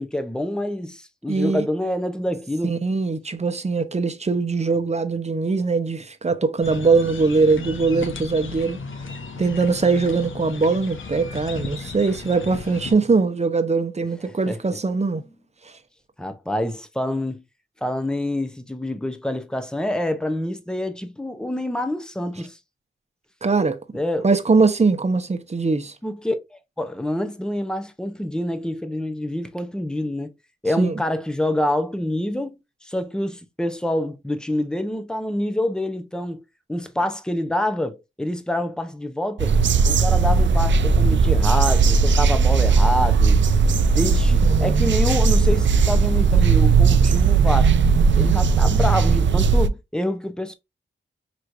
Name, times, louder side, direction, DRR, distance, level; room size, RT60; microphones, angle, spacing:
voice 1, 0.0-2.8 14.5-14.6 16.2-17.4 17.8-22.6 23.9-24.3 26.0-30.3 30.6-36.4 36.7-39.6 39.8-43.4 43.9-47.7 48.1-50.6, left 1 dB, 5° left, 0.7 m, -26 dB
voice 2, 1.3-1.6 2.6-8.8 9.4-15.2 23.4-23.8 24.2-25.9 30.8-31.0 44.4-45.0, right 4 dB, 30° right, 0.8 m, -21 dB
sound 1, 6.6-12.9, left 4 dB, 70° left, 1.0 m, -35 dB
sound 2, 39.4-49.7, right 5 dB, 65° right, 0.5 m, -17 dB
6.0 x 3.1 x 2.6 m
cardioid pair, 70°, 21 cm